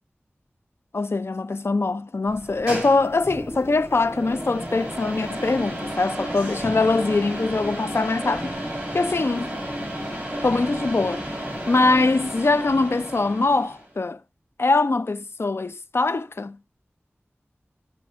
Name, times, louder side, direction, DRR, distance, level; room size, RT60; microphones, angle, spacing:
voice 1, 0.9-8.6 8.9-9.6 10.4-11.3 11.7-14.2 14.6-16.6, left 3 dB, 65° left, 0.5 m, -22 dB
sound 1, 2.3-13.9, equal, 30° right, 4.2 m, -32 dB
14.0 x 5.2 x 2.5 m
wide cardioid pair, 45°, 5 cm